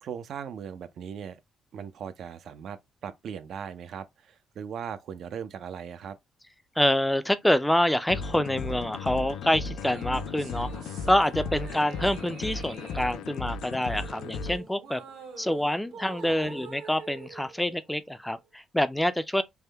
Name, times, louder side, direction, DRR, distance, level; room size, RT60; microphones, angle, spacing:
voice 1, 0.0-1.4 1.7-6.2 16.2-16.5, right 7 dB, 70° right, 0.4 m, -39 dB
voice 2, 6.8-15.0 15.4-19.4, left 1 dB, 5° left, 0.4 m, -26 dB
sound 1, 8.1-14.6, left 4 dB, 85° left, 0.4 m, -35 dB
sound 2, 9.8-18.4, right 5 dB, 85° right, 1.4 m, -46 dB
3.4 x 2.1 x 3.3 m
cardioid pair, 90°, 0 cm